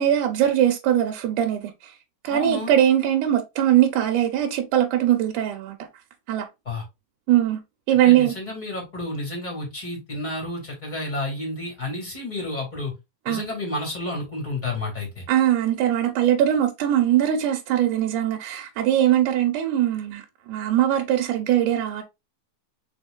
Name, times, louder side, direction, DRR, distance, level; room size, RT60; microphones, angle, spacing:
voice 1, 0.0-1.9 2.2-5.8 6.3-6.5 7.3-7.6 7.9-8.3 13.3-13.5 15.3-22.0, right 11 dB, 80° right, 2.3 m, -21 dB
voice 2, 2.3-2.7 6.7-6.8 8.0-12.9 13.2-15.2, left 2 dB, 15° left, 2.3 m, -31 dB
5.1 x 4.3 x 2.4 m
omnidirectional pair, 3.6 m